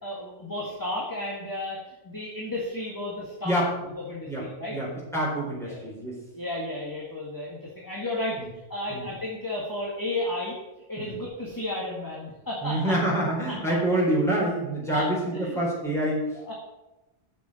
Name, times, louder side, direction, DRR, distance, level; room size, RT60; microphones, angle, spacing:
voice 1, 0.0-4.8 5.6-5.8 6.3-8.4 8.7-10.6 10.9-12.9 13.5-13.6 14.9-15.1 15.3-15.6 16.4-16.5, left 1 dB, 20° left, -4 dB, 1.9 m, -33 dB
voice 2, 4.3-6.2 8.4-8.5 8.9-9.1 11.0-11.2 12.6-16.5, right 1 dB, ahead, -5 dB, 4.2 m, -27 dB
7.8 x 7.0 x 7.5 m, 1.0 s
omnidirectional pair, 1.1 m